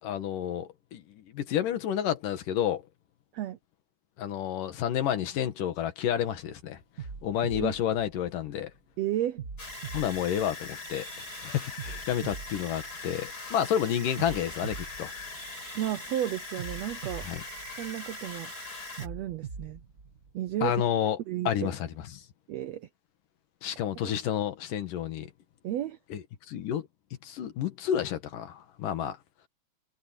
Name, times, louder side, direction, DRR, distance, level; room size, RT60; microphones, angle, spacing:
voice 1, 0.0-2.8 4.2-6.8 7.2-8.7 9.9-11.1 11.4-15.1 17.2-17.4 20.6-21.2 21.4-22.2 23.6-25.3 26.1-26.9 27.2-29.2, left 10 dB, 75° left, 3.2 m, -30 dB
sound 1, 6.1-6.4 7.0-8.8 9.4-11.2 11.8-13.6 14.2-16.0 16.6-18.4 19.0-20.8, right 6 dB, 45° right, 1.0 m, -43 dB
voice 2, 9.0-9.4 15.7-17.3 17.8-18.5 19.0-19.8 20.3-20.8 21.3-21.7 22.5-22.9 25.6-26.0, right 12 dB, 85° right, 1.5 m, -32 dB
sound 2, 9.6-19.1, left 2 dB, 25° left, 5.7 m, -41 dB
omnidirectional pair, 3.8 m